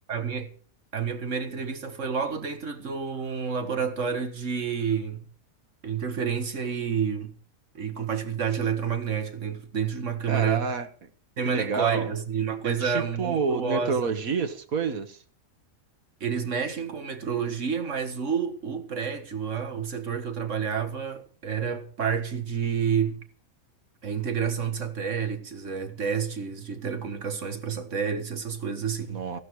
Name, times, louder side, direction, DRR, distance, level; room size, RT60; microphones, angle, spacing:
voice 1, 0.1-0.5 0.9-5.3 5.8-7.3 7.8-10.7 11.4-14.0 16.2-23.2 24.0-29.2, right 7 dB, 60° right, 1.8 m, -29 dB
voice 2, 10.3-10.9 11.5-12.1 12.6-15.2 29.1-29.4, right 5 dB, 90° right, 1.9 m, -28 dB
15.5 x 12.0 x 4.8 m
omnidirectional pair, 1.4 m